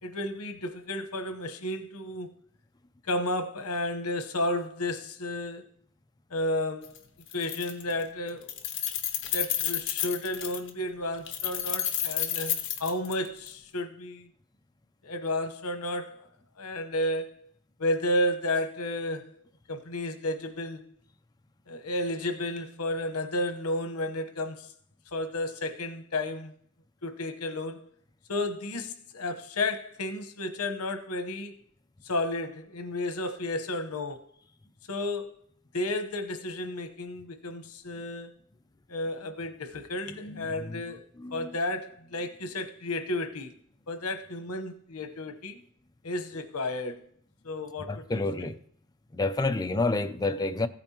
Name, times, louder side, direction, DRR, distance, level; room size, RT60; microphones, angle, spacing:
voice 1, 0.0-2.3 3.1-5.7 6.3-7.0 7.3-8.6 9.3-14.3 15.0-16.3 16.6-17.5 17.8-19.4 19.7-20.8 21.7-24.7 25.1-26.5 27.0-27.8 28.3-31.6 32.0-34.2 34.9-35.4 35.7-38.3 38.9-41.0 41.3-43.5 43.9-45.6 46.0-47.0 47.4-48.5, left 1 dB, 85° left, 1.0 m, -32 dB
Keys jangling, 6.8-7.0 7.3-8.0 8.3-10.7 11.3-13.5, left 11 dB, 60° left, 0.9 m, -31 dB
voice 2, 40.1-40.8 41.2-41.5 47.9-48.6 49.1-50.7, left 2 dB, 20° left, 0.5 m, -29 dB
15.0 x 8.7 x 2.9 m
head